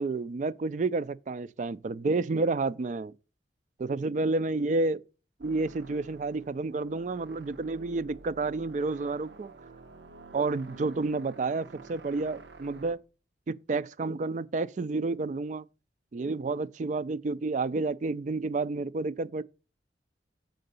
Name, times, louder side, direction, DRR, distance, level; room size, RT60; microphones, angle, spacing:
voice 1, 0.0-3.1 3.8-5.0 5.4-9.5 10.3-13.0 13.5-15.7 16.1-19.4, right 3 dB, 45° right, 0.3 m, -30 dB
sound 1, 5.4-13.0, right 3 dB, 80° right, 0.9 m, -50 dB
7.6 x 3.9 x 6.7 m
head